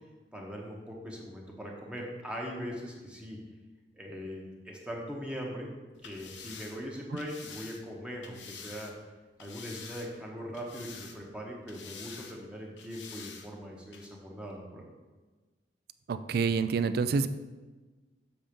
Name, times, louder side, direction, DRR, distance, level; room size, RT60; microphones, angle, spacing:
voice 1, 0.3-3.4 3.9-5.7 6.0-8.9 9.4-14.9, equal, 5° right, -2 dB, 0.9 m, -40 dB
sound 1, 5.9-8.9 9.4-10.3 10.5-11.4 11.7-12.4 12.8-13.5 13.9-14.1, left 6 dB, 80° left, 0.7 m, -47 dB
voice 2, 16.1-17.3, right 5 dB, 60° right, 12 dB, 0.3 m, -27 dB
7.1 x 3.7 x 5.2 m, 1.3 s
head